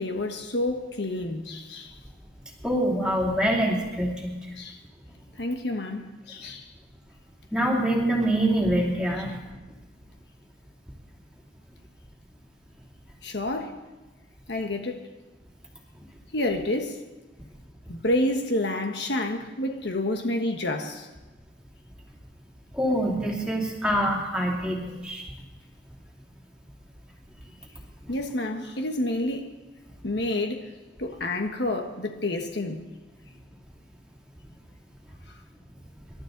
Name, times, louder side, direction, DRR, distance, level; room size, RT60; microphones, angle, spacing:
voice 1, 0.0-2.0 4.6-4.8 5.4-6.7 13.2-13.8 14.5-15.1 16.3-17.0 17.9-21.1 28.1-29.5 30.0-30.7 31.0-32.8, left 1 dB, 65° left, 1.3 m, -29 dB
voice 2, 2.6-4.3 7.5-9.3 22.7-25.2, right 1 dB, 5° right, 2.8 m, -25 dB
26.0 x 12.0 x 4.0 m
head